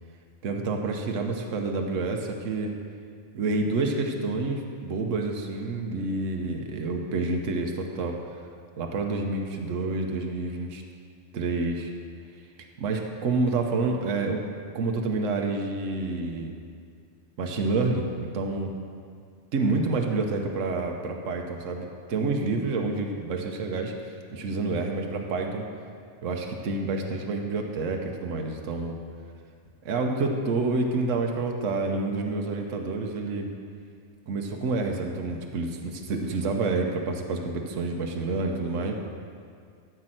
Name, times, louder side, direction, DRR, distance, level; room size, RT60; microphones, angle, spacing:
voice 1, 0.4-2.7 3.3-8.2 8.8-10.8 11.3-11.9 12.8-14.4 14.7-16.5 17.4-18.7 19.5-23.9 24.3-25.6 26.2-29.0 29.8-33.5 34.3-38.9, right 3 dB, 75° right, 2 dB, 1.3 m, -28 dB
13.5 x 5.4 x 7.6 m, 2.2 s
omnidirectional pair, 1.3 m